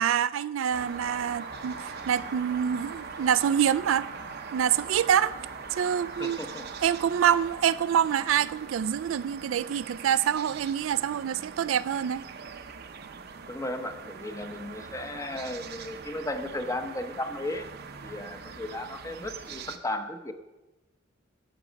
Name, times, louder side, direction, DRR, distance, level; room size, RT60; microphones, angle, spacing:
voice 1, 0.0-4.1 4.5-5.4 5.7-6.4 6.8-12.2, right 9 dB, 80° right, 0.3 m, -26 dB
sound 1, 0.7-19.8, right 5 dB, 55° right, 0.7 m, -42 dB
sound 2, 0.9-7.9, left 3 dB, 45° left, 1.9 m, -51 dB
voice 2, 6.2-6.7 13.5-17.7 18.0-20.3, left 1 dB, 15° left, 0.7 m, -35 dB
11.0 x 8.1 x 5.1 m
head